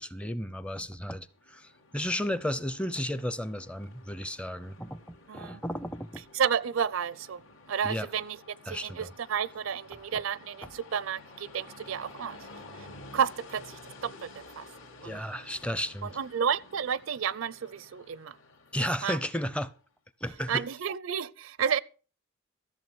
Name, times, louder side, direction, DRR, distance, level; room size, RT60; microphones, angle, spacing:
voice 1, 0.0-6.2 7.8-8.1 8.7-9.1 10.1-10.2 15.0-16.2 18.7-19.7 20.2-20.6, equal, 5° left, 0.5 m, -34 dB
Train, 1.2-19.8, left 2 dB, 70° left, 2.5 m, -52 dB
voice 2, 5.3-5.6 6.3-7.4 7.7-8.4 8.7-12.4 12.8-12.9 13.1-14.7 15.0-15.2 16.0-18.4 19.0-19.2 20.5-21.8, right 7 dB, 70° right, 0.5 m, -31 dB
14.0 x 7.2 x 6.1 m
head